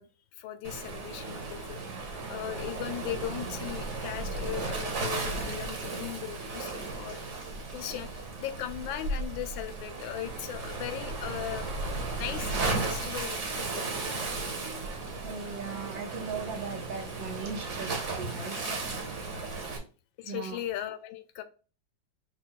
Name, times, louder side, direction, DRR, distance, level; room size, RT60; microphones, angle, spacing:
voice 1, 0.0-1.8 2.3-11.7 12.2-13.8 18.4-18.8 20.2-21.4, left 12 dB, 85° left, 9 dB, 1.3 m, -38 dB
Waves surf, 0.6-19.8, right 3 dB, 45° right, 1.2 m, -35 dB
voice 2, 14.6-18.6 20.2-20.6, right 5 dB, 80° right, 2 dB, 1.6 m, -39 dB
4.9 x 2.3 x 4.4 m, 0.36 s
omnidirectional pair, 2.0 m